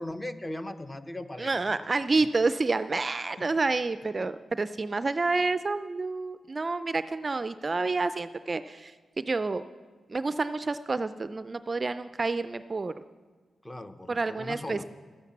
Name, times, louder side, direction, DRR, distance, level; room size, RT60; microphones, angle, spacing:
voice 1, 0.0-1.8 3.4-3.5 4.2-4.3 13.6-14.8, left 1 dB, 15° left, 9 dB, 0.8 m, -38 dB
voice 2, 1.4-9.6 10.1-12.9 14.1-14.8, right 3 dB, 35° right, 12 dB, 0.4 m, -29 dB
13.0 x 9.8 x 7.3 m, 1.4 s
cardioid pair, 90°, 0 cm